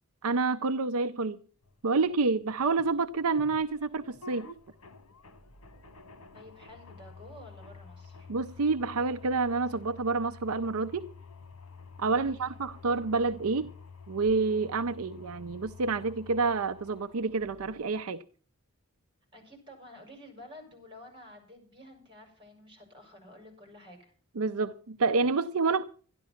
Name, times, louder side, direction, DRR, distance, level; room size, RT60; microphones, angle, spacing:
voice 1, 0.2-1.4 1.8-4.5 8.3-11.1 12.0-13.7 14.1-18.2 24.4-25.8, right 4 dB, 75° right, 0.6 m, -28 dB
sound 1, 1.6-18.1, left 4 dB, 90° left, 1.5 m, -50 dB
voice 2, 6.3-8.3 12.0-12.6 19.3-24.1, left 1 dB, 25° right, 5.7 m, -51 dB
12.5 x 11.5 x 5.8 m
head